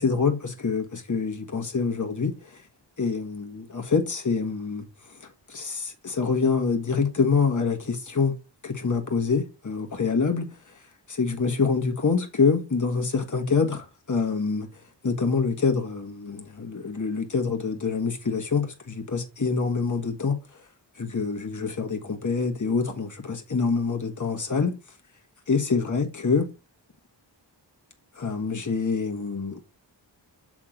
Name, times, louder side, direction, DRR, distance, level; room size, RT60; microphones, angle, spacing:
voice 1, 0.0-2.6 3.0-4.9 5.2-8.3 8.6-10.5 11.1-14.7 15.0-20.4 20.9-24.8 25.5-26.5 28.1-29.6, left 5 dB, 45° left, 1.5 m, -26 dB
7.5 x 3.6 x 5.0 m
wide cardioid pair, 70°, 44 cm